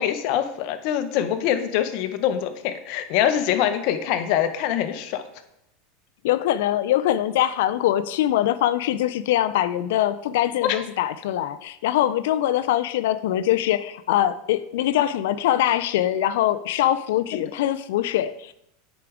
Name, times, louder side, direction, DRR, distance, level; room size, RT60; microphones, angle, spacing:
voice 1, 0.0-5.2 10.6-10.8, left 10 dB, 55° left, 9 dB, 0.8 m, -24 dB
voice 2, 6.2-18.5, left 12 dB, 75° left, 13 dB, 0.4 m, -23 dB
8.4 x 5.0 x 4.8 m, 0.81 s
supercardioid pair, 125°, 0 cm